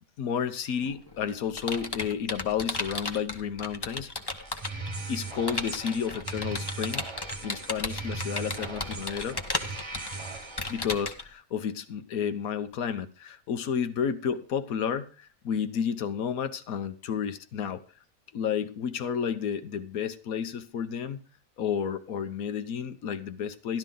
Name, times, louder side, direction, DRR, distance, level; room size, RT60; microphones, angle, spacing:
voice 1, 0.2-4.1 5.1-9.4 10.7-17.8 18.3-21.2 21.6-23.8, left 7 dB, 80° left, 1.4 m, -31 dB
Computer keyboard, 0.8-4.9 5.5-11.2, left 2 dB, 20° left, 0.9 m, -35 dB
sound 1, 4.4-10.9, right 3 dB, 20° right, 1.0 m, -39 dB
12.5 x 12.0 x 3.9 m
omnidirectional pair, 1.5 m